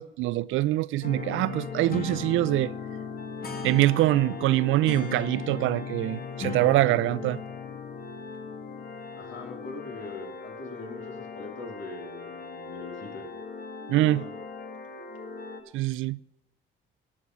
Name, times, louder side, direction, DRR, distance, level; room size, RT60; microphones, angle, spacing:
voice 1, 0.0-2.7 3.6-7.4 13.9-14.2 15.7-16.2, right 17 dB, 85° right, 0.4 m, -24 dB
sound 1, 1.0-15.6, left 5 dB, 50° left, 2.0 m, -37 dB
voice 2, 9.1-13.3 14.0-14.3, left 4 dB, 80° left, 2.9 m, -42 dB
13.0 x 8.1 x 6.1 m
cardioid pair, 90°, 20 cm